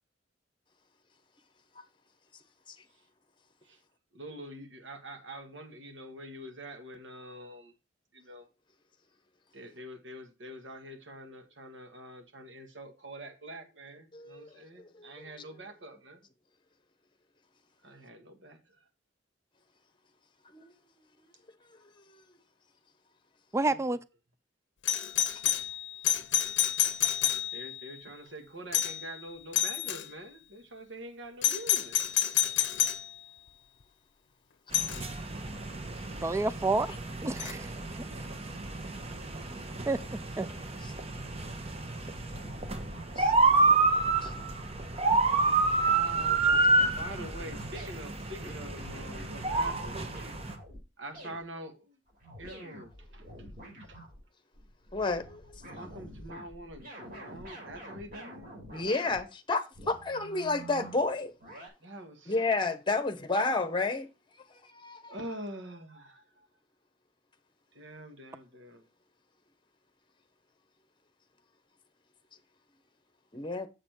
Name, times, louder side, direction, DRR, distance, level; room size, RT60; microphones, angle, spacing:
voice 1, 4.1-7.7 8.1-8.5 9.5-16.2 17.8-18.6 23.7-23.8 25.5-25.7 27.1-27.2 27.5-32.0 45.8-50.0 51.0-52.0 52.4-53.3 53.8-54.0 55.6-58.5 61.8-62.3 65.1-66.4 67.7-68.8, right 1 dB, 70° right, 1.7 m, -45 dB
voice 2, 14.1-14.5 14.9-15.5 20.5-20.7 22.1-22.2 26.6-26.7 40.8-40.9 43.2-43.3 44.2-44.3 54.9-55.6 57.3-57.4 58.7-61.3 62.3-64.1 64.6-65.2 73.3-73.7, left 3 dB, 25° left, 1.0 m, -31 dB
voice 3, 23.5-24.0 36.2-36.9 37.2-38.0 39.9-40.0 40.4-40.5, right 2 dB, 15° right, 0.3 m, -29 dB
Doorbell, 24.8-27.8 28.7-29.1 29.5-30.0 31.4-33.1 34.7-35.0 37.4-37.5, left 12 dB, 70° left, 0.7 m, -28 dB
sound 1, 34.7-50.5, right 3 dB, 35° right, 1.1 m, -29 dB
sound 2, 42.3-50.8 51.1-51.4 52.1-54.2 54.5-59.2 59.7-61.7, right 1 dB, 50° right, 5.3 m, -47 dB
7.5 x 7.0 x 4.4 m
head